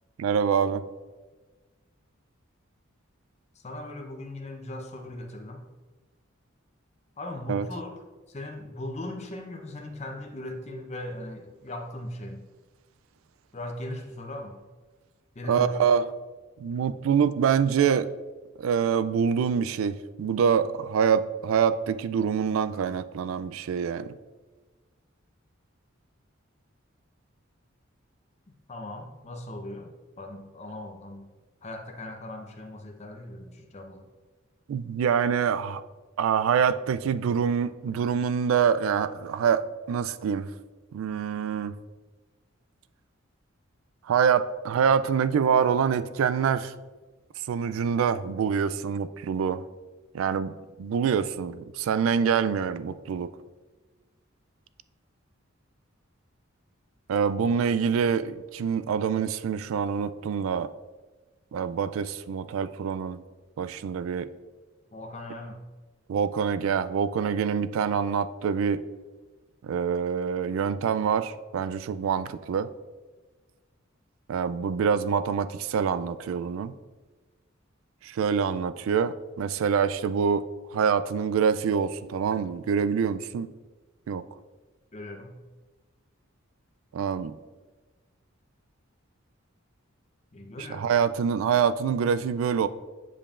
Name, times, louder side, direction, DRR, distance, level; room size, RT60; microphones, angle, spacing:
voice 1, 0.2-0.8 7.5-7.7 15.5-16.1 16.6-18.1 18.6-24.1 34.7-35.8 36.2-40.5 40.9-41.8 44.1-46.7 47.5-49.6 50.1-50.5 50.8-53.3 57.1-60.7 61.5-63.2 63.6-64.3 66.1-68.8 69.6-72.7 74.3-76.7 78.0-80.5 80.7-83.5 84.1-84.2 86.9-87.3 90.6-92.7, right 7 dB, 75° right, 14 dB, 0.3 m, -25 dB
voice 2, 3.6-5.6 7.2-8.0 8.3-12.4 13.5-14.6 15.3-16.0 16.7-17.0 28.7-29.9 30.2-31.3 31.6-34.1 64.9-65.6 84.9-85.4 90.3-90.9 92.1-92.2, left 1 dB, 35° left, 3 dB, 0.7 m, -38 dB
8.5 x 5.3 x 2.4 m, 1.3 s
head